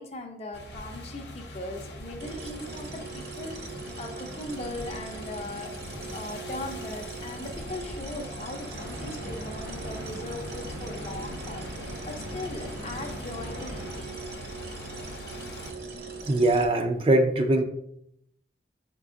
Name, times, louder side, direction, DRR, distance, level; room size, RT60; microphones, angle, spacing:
voice 1, 0.0-5.7 6.1-14.1, left 2 dB, 35° left, 4 dB, 0.5 m, -39 dB
sound 1, 0.5-15.7, equal, 80° left, 0.7 m, -43 dB
sound 2, 2.2-16.7, right 3 dB, 60° right, 0.8 m, -41 dB
sound 3, 8.0-14.0, equal, 80° right, 1.2 m, -41 dB
voice 2, 16.3-17.6, right 1 dB, 30° right, 5 dB, 0.3 m, -22 dB
4.5 x 4.1 x 2.6 m, 0.74 s
head